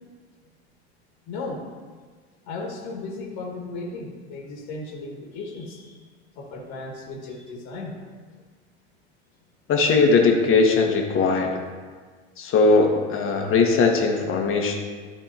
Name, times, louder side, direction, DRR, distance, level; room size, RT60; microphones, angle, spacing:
voice 1, 1.3-1.6 2.5-6.0 6.4-7.9, left 3 dB, 55° left, -1 dB, 1.9 m, -35 dB
voice 2, 9.7-11.6 12.4-14.8, left 4 dB, 40° left, 2 dB, 1.6 m, -19 dB
13.0 x 4.4 x 2.9 m, 1.5 s
hypercardioid pair, 85°, 33 cm